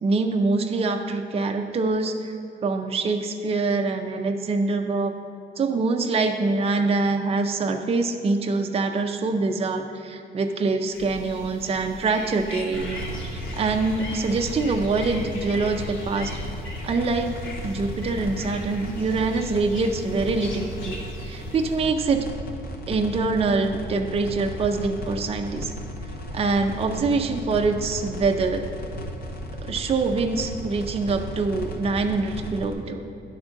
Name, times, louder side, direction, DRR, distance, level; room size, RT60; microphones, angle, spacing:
voice 1, 0.0-2.3 2.6-5.1 5.6-16.3 16.8-22.3 22.9-25.7 26.3-28.6 29.6-33.1, right 3 dB, 30° right, 4 dB, 0.5 m, -25 dB
sound 1, 10.9-21.8, left 1 dB, 75° left, 1.7 m, -40 dB
sound 2, 12.7-32.7, equal, 50° left, 1.1 m, -35 dB
10.5 x 3.6 x 5.2 m, 2.6 s
cardioid pair, 90°, 20 cm